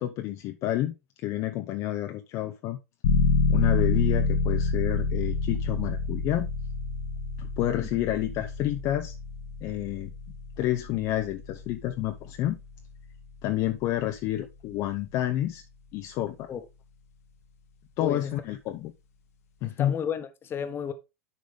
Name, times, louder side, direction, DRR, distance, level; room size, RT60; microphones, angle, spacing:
voice 1, 0.0-2.8 3.5-6.5 7.4-9.2 9.6-10.1 10.6-12.6 13.4-15.6 15.9-16.5 18.0-18.9 19.6-19.9, left 13 dB, 45° left, 0.7 m, -29 dB
sound 1, 3.0-13.6, left 4 dB, 75° left, 1.3 m, -28 dB
voice 2, 18.0-18.4 19.6-20.9, left 8 dB, 30° left, 1.2 m, -33 dB
10.5 x 3.9 x 3.3 m
hypercardioid pair, 95°, 8 cm